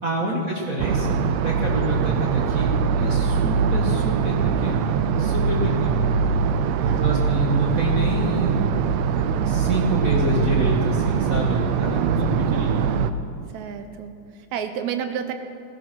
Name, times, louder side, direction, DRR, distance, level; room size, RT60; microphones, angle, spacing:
voice 1, 0.0-2.7 3.0-6.0 6.8-8.6 9.4-12.9, right 1 dB, 45° right, -2 dB, 1.1 m, -27 dB
sound 1, 0.8-13.1, right 6 dB, 90° right, 1.5 m, -22 dB
voice 2, 5.6-6.2 6.8-7.2 11.9-12.2 12.5-13.0 13.5-15.3, right 8 dB, 70° right, 8 dB, 1.9 m, -33 dB
15.5 x 14.5 x 6.1 m, 2.4 s
omnidirectional pair, 3.8 m